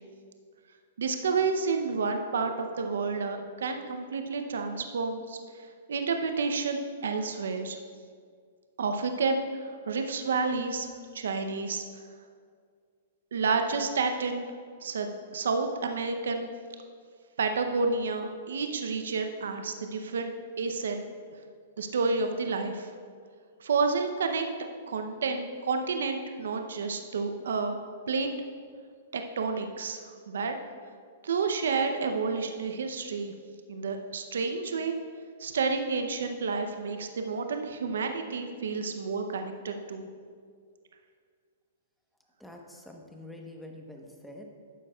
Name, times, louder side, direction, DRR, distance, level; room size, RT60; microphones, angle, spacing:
voice 1, 1.0-7.8 8.8-12.0 13.3-14.5 14.8-16.5 17.4-20.3 20.6-21.0 21.8-22.9 23.6-24.5 24.9-27.8 28.1-28.3 29.1-30.5 31.2-33.3 33.7-35.0 35.4-40.1, right 4 dB, 75° right, 6 dB, 0.6 m, -30 dB
voice 2, 42.4-44.4, left 1 dB, ahead, 1 dB, 1.0 m, -46 dB
12.0 x 8.3 x 2.3 m, 2.1 s
hypercardioid pair, 120°, 0 cm